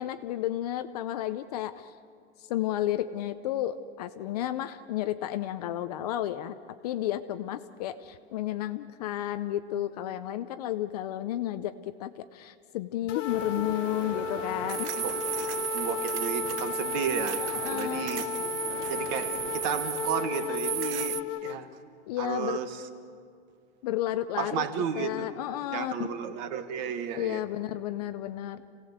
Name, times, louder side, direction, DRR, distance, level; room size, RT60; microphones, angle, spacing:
voice 1, 0.0-1.9 2.5-6.5 6.8-14.9 17.4-18.0 22.1-22.6 23.8-24.6 25.0-26.1 27.1-28.7, left 13 dB, 35° left, 11 dB, 0.5 m, -32 dB
sound 1, 13.1-21.6, left 8 dB, 90° left, 1.0 m, -34 dB
sound 2, 13.3-21.2, right 15 dB, 70° right, 0.6 m, -35 dB
voice 2, 15.7-17.4 17.7-18.2 18.9-21.2 21.4-21.7 22.2-22.8 24.4-25.3 25.7-27.4, right 7 dB, 35° right, 10 dB, 1.4 m, -33 dB
27.0 x 17.5 x 7.9 m, 2.3 s
supercardioid pair, 170°, 36 cm